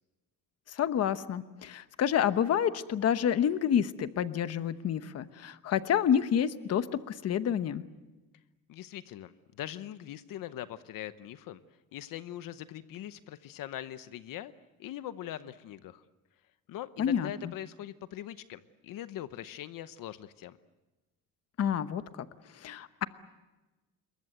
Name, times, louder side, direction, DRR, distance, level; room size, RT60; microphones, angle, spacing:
voice 1, 0.7-7.8 17.0-17.5 21.6-22.0 22.6-23.1, left 9 dB, 45° left, 12 dB, 1.0 m, -28 dB
voice 2, 8.7-11.6 11.9-14.5 14.8-16.0 16.7-20.6, left 12 dB, 70° left, 13 dB, 0.9 m, -42 dB
27.5 x 22.5 x 7.9 m, 1.1 s
cardioid pair, 160°, 34 cm